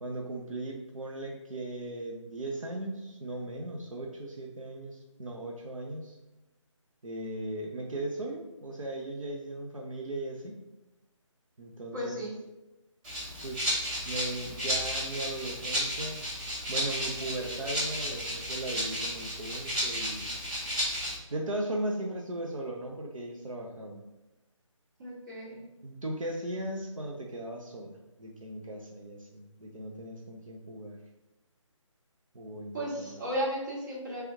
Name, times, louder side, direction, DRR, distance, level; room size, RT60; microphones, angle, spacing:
voice 1, 0.0-6.2 7.0-10.6 11.6-12.2 13.4-13.7 14.0-16.2 16.7-20.3 21.3-24.0 25.8-31.0 32.3-33.2, right 1 dB, 80° right, 0 dB, 0.6 m, -37 dB
voice 2, 11.9-12.3 25.0-25.6 32.7-34.2, equal, 35° right, -5 dB, 1.4 m, -34 dB
Rattle (instrument), 13.0-21.1, equal, 15° right, 0.8 m, -33 dB
3.4 x 2.9 x 3.5 m, 1.0 s
figure-of-eight pair, 150°, 17 cm